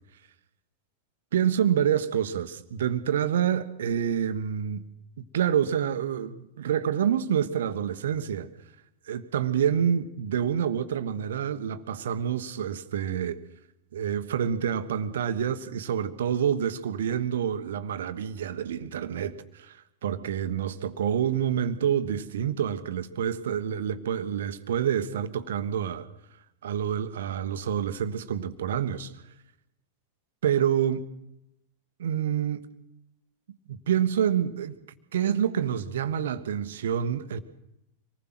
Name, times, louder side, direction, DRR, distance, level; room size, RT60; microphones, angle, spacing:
voice 1, 1.3-4.8 5.3-8.5 9.0-13.4 13.9-26.1 26.6-29.1 30.4-31.1 32.0-32.7 33.5-34.8 35.1-37.4, right 9 dB, 60° right, 1.3 m, -27 dB
26.0 x 19.5 x 6.1 m
figure-of-eight pair, 90°, 0 cm